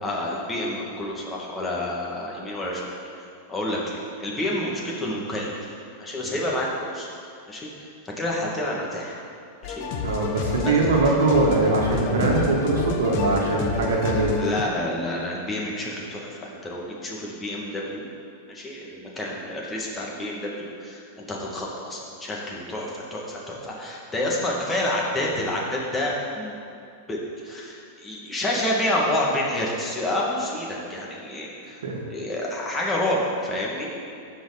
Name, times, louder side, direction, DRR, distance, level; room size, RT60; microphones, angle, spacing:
voice 1, 0.0-3.2 3.5-5.5 6.0-7.1 7.5-7.9 8.2-9.2 9.6-9.8 10.6-11.0 12.2-12.3 14.4-18.1 18.5-26.6 27.1-31.8 32.1-33.9, left 1 dB, 15° left, -3 dB, 2.2 m, -29 dB
sound 1, 9.6-14.6, left 5 dB, 55° left, 1.1 m, -30 dB
voice 2, 10.0-14.3 31.6-32.0, right 2 dB, 85° right, -1 dB, 1.5 m, -22 dB
15.0 x 5.2 x 4.2 m, 2.4 s
hypercardioid pair, 115°, 0 cm